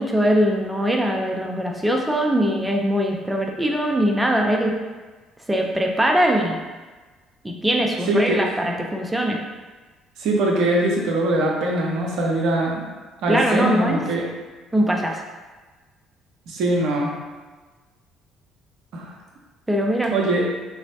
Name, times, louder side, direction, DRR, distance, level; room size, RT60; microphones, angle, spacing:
voice 1, 0.0-4.7 5.5-6.6 7.4-9.4 13.3-14.0 14.7-15.2 19.7-20.1, equal, 10° right, 1 dB, 0.5 m, -21 dB
voice 2, 8.1-8.4 10.2-12.8 13.2-14.2 16.5-17.1 18.9-19.1 20.1-20.5, right 2 dB, 60° right, -2 dB, 0.5 m, -22 dB
3.0 x 2.0 x 2.7 m, 1.3 s
figure-of-eight pair, 50°, 0 cm